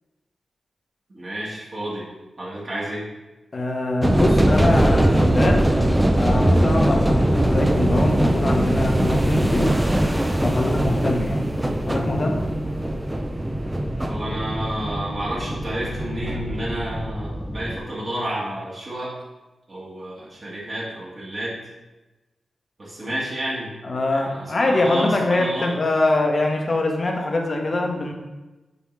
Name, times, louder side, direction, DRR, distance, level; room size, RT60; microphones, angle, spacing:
voice 1, 1.1-2.1 2.4-3.0 14.1-19.1 19.7-21.5 22.8-23.7 24.1-25.7, right 1 dB, 45° right, -8 dB, 1.9 m, -30 dB
voice 2, 3.5-5.7 6.2-9.8 10.4-11.4 11.9-12.5 23.0-23.1 23.8-28.1, left 2 dB, 45° left, 2 dB, 1.0 m, -23 dB
sound 1, 4.0-17.8, right 1 dB, 15° right, 0.5 m, -21 dB
6.7 x 4.6 x 3.3 m, 1.1 s
cardioid pair, 75°, 0 cm